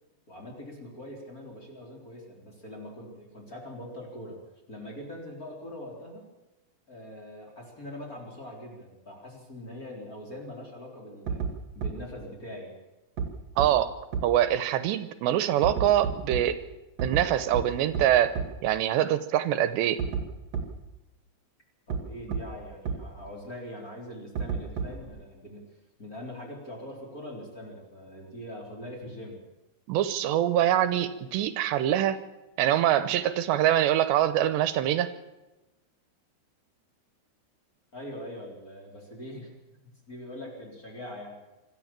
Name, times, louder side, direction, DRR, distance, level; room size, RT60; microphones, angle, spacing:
voice 1, 0.3-4.4 4.7-6.3 6.9-11.4 11.7-12.7 21.9-25.6 26.0-29.4 37.9-39.5 39.8-41.4, left 1 dB, 20° left, -1 dB, 4.2 m, -42 dB
sound 1, 11.3-11.5 11.8-11.9 13.2-13.3 13.6-13.7 14.1-14.2 15.6-16.4 17.0-17.2 17.5-17.6 17.9-18.0 18.4-18.5 20.0-20.2 20.5-20.6 21.9-22.0 22.3-22.4 22.9-23.0 24.4-25.1, right 6 dB, 45° right, 2.9 m, -29 dB
voice 2, 13.6-13.9 14.2-16.6 17.0-18.4 18.6-20.0 29.9-32.2 32.6-35.1, right 11 dB, 80° right, 12 dB, 3.0 m, -24 dB
25.5 x 13.5 x 7.4 m, 1.0 s
omnidirectional pair, 5.0 m